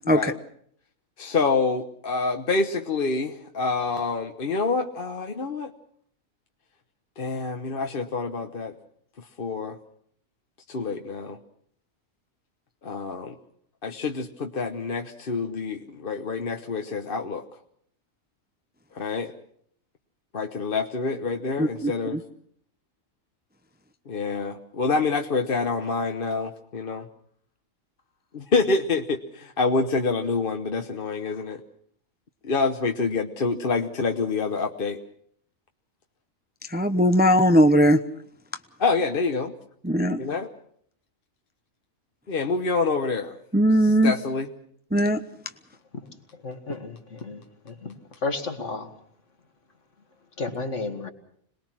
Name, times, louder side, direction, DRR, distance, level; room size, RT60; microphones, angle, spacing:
voice 1, 0.0-0.4 1.2-5.7 7.2-8.7 9.2-9.8 10.7-11.4 12.8-13.4 13.8-17.4 18.9-19.3 20.3-22.2 24.1-27.1 28.3-31.6 32.4-35.0 38.8-39.5 40.2-40.5 42.3-43.4 43.8-44.5, left 4 dB, 45° left, 5 dB, 1.2 m, -27 dB
voice 2, 21.6-22.2 36.7-38.0 39.8-40.2 43.5-44.1 44.9-45.2, equal, 10° right, 8 dB, 0.8 m, -19 dB
voice 3, 46.4-47.0 47.2-47.4 47.7-47.9 48.2-48.9 50.4-51.1, left 3 dB, 65° left, 5 dB, 2.5 m, -31 dB
26.5 x 20.0 x 6.0 m, 0.65 s
omnidirectional pair, 1.4 m